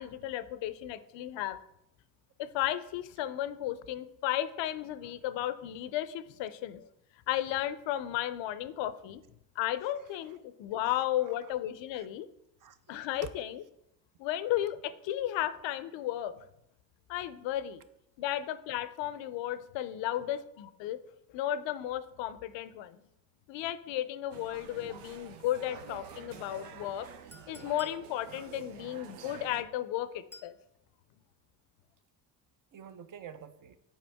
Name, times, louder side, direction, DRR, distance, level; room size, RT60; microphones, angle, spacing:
voice 1, 0.0-1.6 2.4-6.9 7.3-9.2 9.6-12.3 12.9-13.6 14.2-16.4 17.1-17.8 18.2-21.0 21.3-23.0 23.5-27.1 27.5-30.6, left 12 dB, 65° left, 0.6 m, -34 dB
voice 2, 10.0-10.4 10.8-11.5 11.9-12.1 12.6-13.3 20.2-20.4 32.7-33.8, right 8 dB, 40° right, 0.7 m, -50 dB
sound 1, 24.3-29.6, right 7 dB, 85° right, 0.6 m, -48 dB
Chink clink, 27.3-28.0 30.3-30.6, left 1 dB, 5° left, 0.6 m, -52 dB
7.1 x 4.9 x 3.5 m
hypercardioid pair, 60°, 48 cm